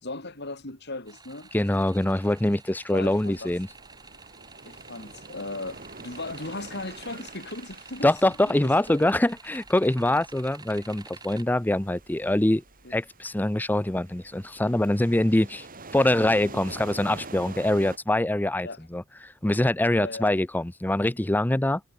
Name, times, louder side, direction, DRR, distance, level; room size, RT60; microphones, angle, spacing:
voice 1, 0.0-1.5 2.9-3.5 4.7-8.1 8.5-9.1 12.8-13.0 15.9-16.1 18.6-18.9 20.0-20.3, left 2 dB, 55° left, 5.3 m, -37 dB
sound 1, 1.1-11.5, right 4 dB, 20° right, 5.5 m, -49 dB
voice 2, 1.5-3.7 8.0-12.6 12.9-15.7 15.9-21.8, left 1 dB, 10° left, 0.5 m, -24 dB
sound 2, 3.0-18.0, right 3 dB, 40° right, 5.9 m, -46 dB
head